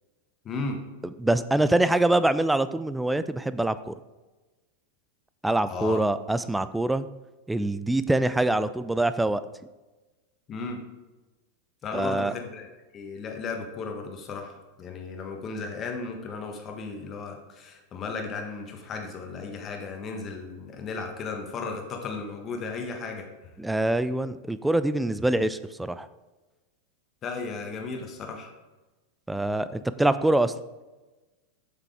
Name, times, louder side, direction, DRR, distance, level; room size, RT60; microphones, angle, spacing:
voice 1, 0.4-0.8 5.7-6.0 10.5-10.8 11.8-12.7 12.9-23.3 27.2-28.5, left 4 dB, 30° left, 3 dB, 1.3 m, -35 dB
voice 2, 1.2-3.9 5.4-7.1 7.5-9.4 11.9-12.3 23.6-26.1 29.3-30.5, right 1 dB, 5° right, 13 dB, 0.3 m, -24 dB
7.6 x 5.7 x 3.6 m, 1.2 s
figure-of-eight pair, 90°, 0 cm